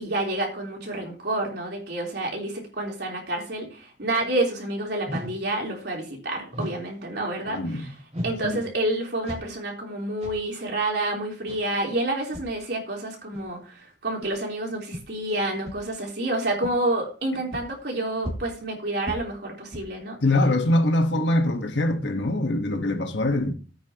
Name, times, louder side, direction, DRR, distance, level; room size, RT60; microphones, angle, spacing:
voice 1, 0.0-7.9 8.2-20.2, right 1 dB, 65° right, 3.7 m, -29 dB
sound 1, 5.1-5.4 6.5-6.9 8.1-8.5 9.2-9.6 10.2-10.4 11.5-11.6 12.3-12.5 13.3-13.4 14.2-14.3 14.9-15.0 15.6-15.9 16.6-16.8 17.5-17.7 18.2-18.6 19.1-19.3 19.7-19.9, equal, 40° right, 3.2 m, -34 dB
voice 2, 7.5-7.9 8.4-8.6 20.2-23.5, left 1 dB, 90° left, 1.3 m, -23 dB
15.5 x 8.6 x 2.9 m
head